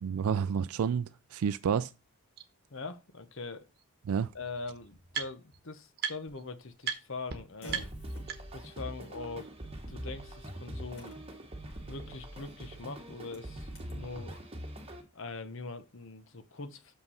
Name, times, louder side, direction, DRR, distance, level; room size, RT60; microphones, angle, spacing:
voice 1, 0.0-1.9 4.1-4.3, right 7 dB, 75° right, 0.3 m, -30 dB
sound 1, 1.6-1.7 2.4-2.5 3.8-3.9 4.1-5.6 6.0-6.4 6.8-7.0 7.3-7.4 7.7-8.7, right 7 dB, 45° right, 1.1 m, -38 dB
voice 2, 2.7-3.7 4.3-7.9 8.5-9.5 9.9-11.2 11.9-14.5 15.1-16.9, left 3 dB, 60° left, 1.0 m, -42 dB
Fart, 6.3-14.0, left 1 dB, 75° left, 5.6 m, -56 dB
sound 2, 7.7-15.0, right 1 dB, 25° right, 1.3 m, -43 dB
6.8 x 5.8 x 5.4 m
head